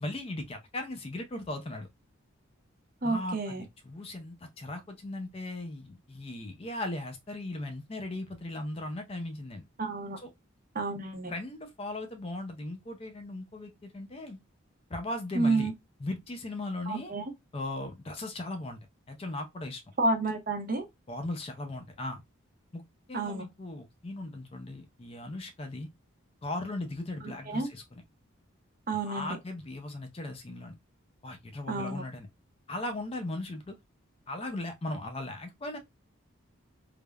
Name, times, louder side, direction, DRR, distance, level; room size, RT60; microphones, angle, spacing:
voice 1, 0.0-1.9 3.0-9.6 10.2-10.3 11.3-14.4 14.9-15.7 16.0-17.1 17.5-18.8 19.1-19.8 21.1-22.2 22.7-22.8 23.1-25.9 26.4-28.0 28.9-30.8 31.2-32.3 32.7-33.7 34.3-35.8, left 2 dB, 25° left, 0.4 m, -38 dB
voice 2, 3.0-3.6 9.8-10.2 10.8-11.3 15.3-15.7 16.9-17.2 20.0-20.9 23.1-23.4 27.2-27.7 28.9-29.4 31.7-32.0, right 2 dB, 40° right, 0.6 m, -30 dB
3.3 x 2.0 x 2.2 m
head